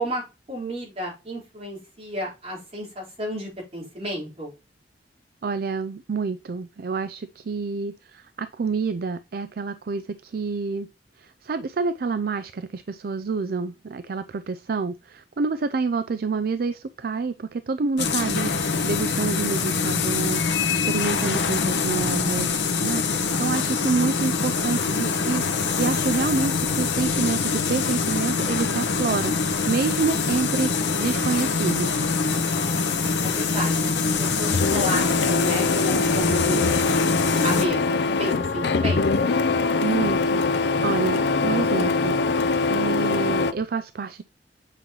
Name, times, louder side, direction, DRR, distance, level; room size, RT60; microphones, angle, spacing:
voice 1, 0.0-4.5 33.2-36.7 37.4-39.1, right 1 dB, 35° right, 4.3 m, -32 dB
voice 2, 5.4-10.9 11.2-20.4 20.7-32.1 39.8-42.2 42.7-44.2, right 4 dB, 60° right, 0.4 m, -28 dB
sound 1, 18.0-37.7, left 4 dB, 90° left, 1.1 m, -24 dB
Printer, 34.5-43.5, left 3 dB, 75° left, 0.6 m, -23 dB
8.2 x 5.5 x 3.1 m
head